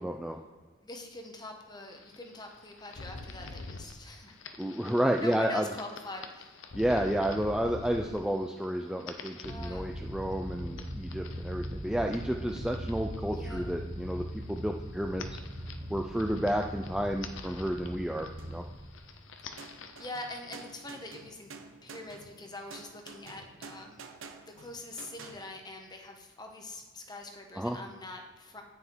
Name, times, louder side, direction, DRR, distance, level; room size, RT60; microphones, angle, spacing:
voice 1, 0.0-0.4 4.6-5.6 6.7-15.4 15.9-18.6 27.6-27.8, equal, 5° right, 2 dB, 0.4 m, -31 dB
voice 2, 0.8-4.4 5.2-6.7 9.5-10.0 13.3-13.7 20.0-21.5 21.8-24.1 24.4-28.6, left 2 dB, 20° left, 3 dB, 1.1 m, -44 dB
sound 1, 1.9-21.2, left 3 dB, 75° left, 0.8 m, -48 dB
sound 2, 9.4-19.5, equal, 35° right, 1.2 m, -40 dB
sound 3, 18.4-19.1 19.6-25.5, right 4 dB, 90° right, 0.9 m, -50 dB
9.5 x 6.3 x 4.5 m, 1.5 s
head